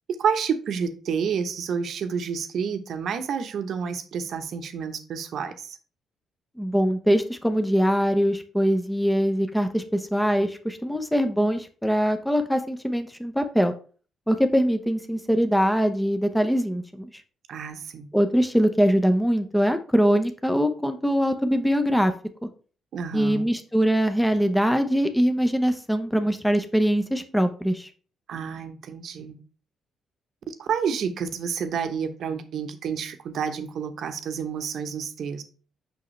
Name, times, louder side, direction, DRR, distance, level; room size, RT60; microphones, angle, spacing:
voice 1, 0.2-5.8 17.5-18.1 22.9-23.5 28.3-29.4 30.5-35.4, right 6 dB, 65° right, 0.9 m, -29 dB
voice 2, 6.6-13.7 14.3-17.1 18.1-22.1 23.1-27.9, equal, 5° left, 0.8 m, -22 dB
6.2 x 5.7 x 3.2 m
cardioid pair, 90°, 0 cm